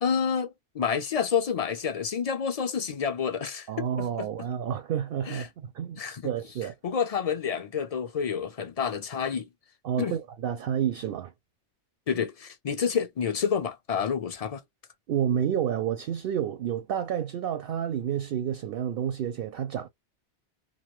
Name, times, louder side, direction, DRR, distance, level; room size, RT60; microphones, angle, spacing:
voice 1, 0.0-4.3 5.3-5.5 6.0-6.3 6.8-9.5 10.0-10.2 12.1-14.6, left 7 dB, 50° left, 0.4 m, -29 dB
voice 2, 3.7-6.7 9.8-11.3 15.1-19.9, right 9 dB, 60° right, 0.6 m, -30 dB
2.6 x 2.4 x 3.0 m
omnidirectional pair, 1.2 m